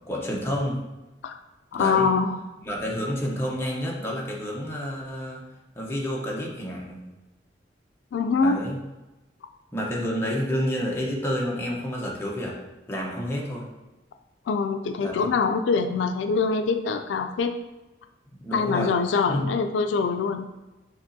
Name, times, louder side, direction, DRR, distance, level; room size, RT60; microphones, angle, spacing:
voice 1, 0.1-0.8 1.7-2.1 2.6-5.4 5.7-7.0 8.4-8.8 9.7-12.6 12.9-13.7 15.0-15.3 18.4-18.9 19.3-19.4, equal, 15° left, -3 dB, 0.8 m, -29 dB
voice 2, 1.7-2.4 8.1-8.6 14.5-17.5 18.5-20.5, left 4 dB, 90° left, 7 dB, 0.3 m, -24 dB
6.8 x 2.9 x 2.6 m, 1.1 s
head